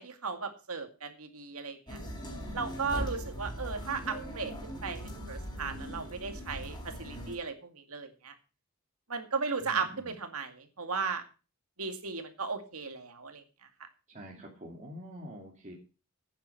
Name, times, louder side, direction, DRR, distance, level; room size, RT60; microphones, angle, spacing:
voice 1, 0.0-2.0 2.5-5.0 5.3-8.3 9.1-11.2 11.8-13.4, right 5 dB, 70° right, 7 dB, 2.3 m, -36 dB
sound 1, 1.9-7.4, equal, 20° left, 4.8 m, -40 dB
voice 2, 2.5-2.9 9.6-10.1 14.1-15.7, equal, 35° right, -2 dB, 2.6 m, -47 dB
11.0 x 9.3 x 5.8 m, 0.33 s
head